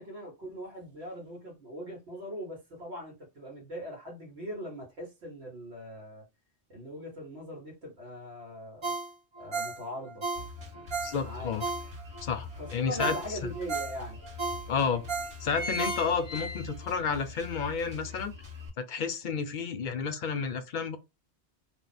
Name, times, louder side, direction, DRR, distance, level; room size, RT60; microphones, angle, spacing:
voice 1, 0.0-6.2 6.7-8.9 9.4-10.2 11.2-11.5 12.5-14.2, equal, 70° right, 1.4 m, -41 dB
Ringtone, 8.8-12.3 12.7-12.8 13.0-16.4 16.8-16.9, right 4 dB, 45° right, 0.3 m, -35 dB
Drum kit, 10.3-18.7, left 3 dB, 25° right, 1.4 m, -44 dB
voice 2, 11.0-11.6 12.2-13.1 13.4-13.5 14.7-15.0 15.4-18.3 18.8-21.0, left 6 dB, 55° left, 0.6 m, -31 dB
sound 1, 11.3-11.4 11.8-13.0 13.7-13.8 14.0-14.1 14.8-15.0 15.2-17.1 17.5-17.6, left 2 dB, 75° left, 0.9 m, -38 dB
2.8 x 2.0 x 4.0 m
omnidirectional pair, 1.2 m